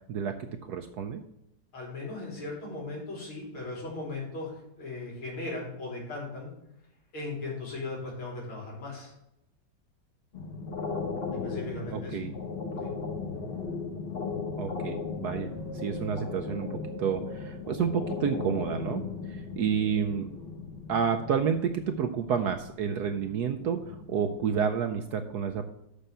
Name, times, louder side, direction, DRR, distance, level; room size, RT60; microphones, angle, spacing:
voice 1, 0.6-1.2 11.9-12.3 14.6-19.0 19.3-20.3 20.9-25.7, right 7 dB, 70° right, 7 dB, 0.9 m, -30 dB
voice 2, 1.7-4.5 4.8-6.5 7.1-9.1 11.4-12.2 12.8-12.9, left 2 dB, 90° left, -3 dB, 4.3 m, -37 dB
sound 1, 10.3-24.7, left 4 dB, 40° left, 0.9 m, -37 dB
Wind, 15.2-18.8 19.3-20.6 21.1-21.2, right 2 dB, 20° left, 1.2 m, -48 dB
6.7 x 6.2 x 6.7 m, 0.82 s
omnidirectional pair, 2.3 m